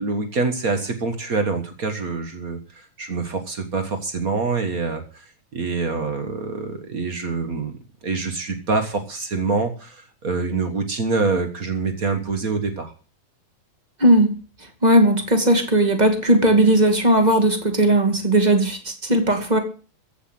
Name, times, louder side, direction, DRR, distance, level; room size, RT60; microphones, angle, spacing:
voice 1, 0.0-12.9, right 4 dB, 80° right, 7 dB, 0.7 m, -26 dB
voice 2, 14.8-19.6, right 1 dB, 15° right, 6 dB, 1.9 m, -17 dB
15.0 x 8.3 x 7.7 m, 0.37 s
omnidirectional pair, 4.0 m